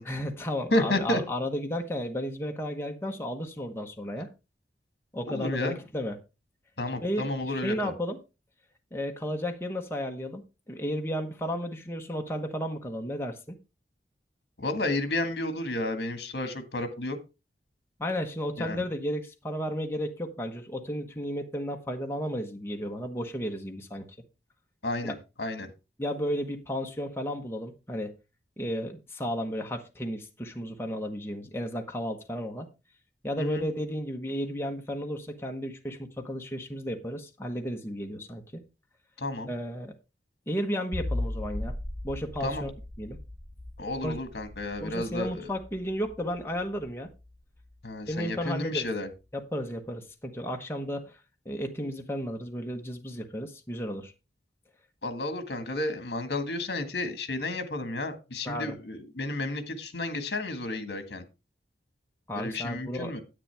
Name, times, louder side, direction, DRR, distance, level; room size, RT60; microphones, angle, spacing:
voice 1, 0.0-4.3 5.1-6.2 7.0-8.2 8.9-13.6 18.0-24.1 25.0-25.1 26.0-28.1 28.6-32.7 33.2-38.6 39.5-39.9 40.5-41.7 42.0-42.7 43.0-43.2 44.0-44.2 44.8-47.1 48.1-48.9 49.3-51.2 51.4-54.1 58.4-58.8 62.3-63.1, equal, 15° left, 1.1 m, -33 dB
voice 2, 0.7-1.2 5.2-5.8 6.8-7.9 14.6-17.2 18.6-18.8 24.8-25.7 33.4-33.7 39.2-39.5 42.4-42.6 43.8-45.5 47.8-49.1 55.0-61.2 62.3-63.2, left 2 dB, 65° left, 1.7 m, -31 dB
sound 1, 40.9-48.1, left 1 dB, 5° right, 1.8 m, -38 dB
9.9 x 8.7 x 3.4 m
head